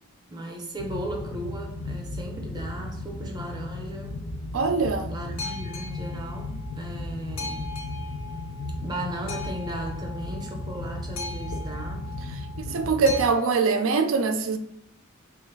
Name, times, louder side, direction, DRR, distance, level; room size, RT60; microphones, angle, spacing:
voice 1, 0.3-4.2 5.1-7.8 8.8-12.1, right 1 dB, 20° right, 0.6 m, -36 dB
Boat Water vehicle, 0.8-13.3, left 2 dB, 65° left, 0.6 m, -34 dB
voice 2, 4.5-5.1 12.7-14.6, right 4 dB, 75° right, 0.4 m, -23 dB
3.3 x 2.5 x 4.4 m
head